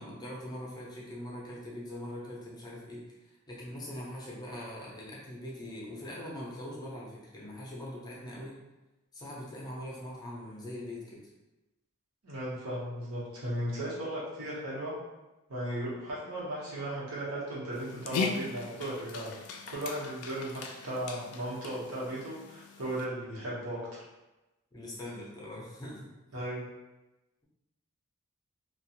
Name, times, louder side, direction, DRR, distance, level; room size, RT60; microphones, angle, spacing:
voice 1, 0.0-8.6 9.1-11.2 24.7-26.1, left 1 dB, 20° left, -4 dB, 0.5 m, -42 dB
voice 2, 12.2-14.9 15.5-24.0 26.3-26.7, right 1 dB, 80° right, -7 dB, 0.9 m, -36 dB
Dog, 17.7-23.1, left 5 dB, 85° left, 0.3 m, -39 dB
2.4 x 2.2 x 2.8 m, 1.0 s
head